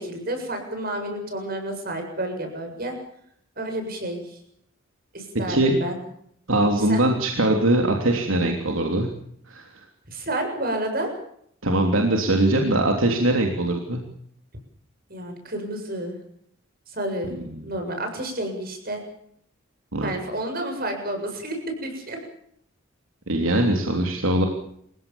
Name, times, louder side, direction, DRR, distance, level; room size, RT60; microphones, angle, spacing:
voice 1, 0.0-3.0 3.6-4.4 5.1-6.0 6.9-7.0 10.1-11.1 15.1-16.2 16.9-17.4 17.6-19.0 20.0-22.2, right 1 dB, 45° right, 5 dB, 7.4 m, -30 dB
voice 2, 6.5-9.1 9.5-9.8 11.6-14.0 17.3-17.6 19.9-20.1 23.3-24.5, right 1 dB, 80° right, 2 dB, 3.3 m, -22 dB
28.5 x 16.5 x 7.2 m, 0.68 s
head